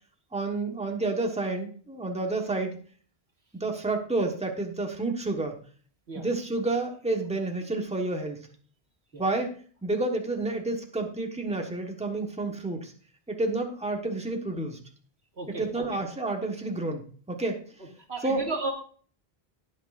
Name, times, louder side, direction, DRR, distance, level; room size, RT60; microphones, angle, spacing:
voice 1, 0.3-2.8 3.6-5.6 6.1-8.5 9.1-9.6 9.8-12.9 13.3-14.8 15.5-17.6 18.2-18.4, right 2 dB, 5° right, 3 dB, 1.3 m, -30 dB
voice 2, 15.4-15.8 18.1-18.7, right 3 dB, 90° right, 1 dB, 2.4 m, -33 dB
19.0 x 6.4 x 2.5 m, 0.43 s
omnidirectional pair, 1.0 m